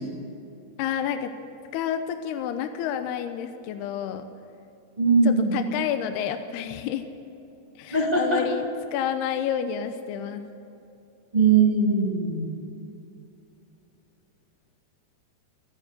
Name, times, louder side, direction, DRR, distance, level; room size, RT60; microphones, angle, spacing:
voice 1, 0.8-1.3 1.7-4.2 5.2-7.0 7.8-8.7 8.9-10.4, left 9 dB, 80° left, 8 dB, 2.8 m, -29 dB
voice 2, 5.0-5.6 7.9-8.4 11.3-12.5, right 4 dB, 15° right, -1 dB, 1.7 m, -20 dB
28.0 x 9.9 x 9.7 m, 2.8 s
omnidirectional pair, 4.9 m